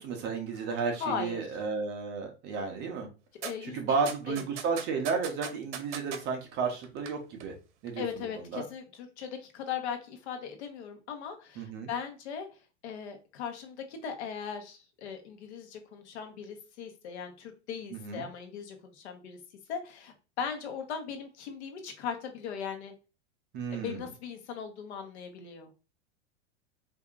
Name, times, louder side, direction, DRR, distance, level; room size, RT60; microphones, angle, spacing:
voice 1, 0.0-3.1 3.6-7.5 7.8-8.3 8.5-8.6 11.6-11.9 17.9-18.2 23.5-24.1, right 5 dB, 30° right, 3 dB, 0.8 m, -33 dB
voice 2, 1.0-1.6 3.4-4.5 8.0-19.4 19.7-22.9 23.7-25.7, left 7 dB, 70° left, 5 dB, 1.1 m, -39 dB
sound 1, 3.4-3.5 4.1-6.2 6.8-7.1 7.4-7.5, right 8 dB, 90° right, 0.7 m, -38 dB
4.8 x 2.7 x 2.4 m, 0.32 s
supercardioid pair, 150°, 35 cm